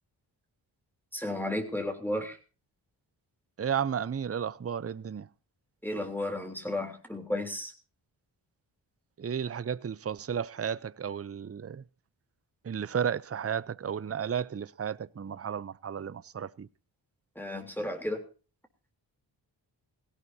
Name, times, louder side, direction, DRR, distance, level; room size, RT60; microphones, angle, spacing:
voice 1, 1.1-2.4 5.8-7.7 17.3-18.3, left 1 dB, 5° left, 3.4 m, -33 dB
voice 2, 3.6-5.3 9.2-11.8 12.6-16.7, right 8 dB, 30° right, 0.7 m, -33 dB
18.5 x 17.0 x 2.8 m
cardioid pair, 45°, 48 cm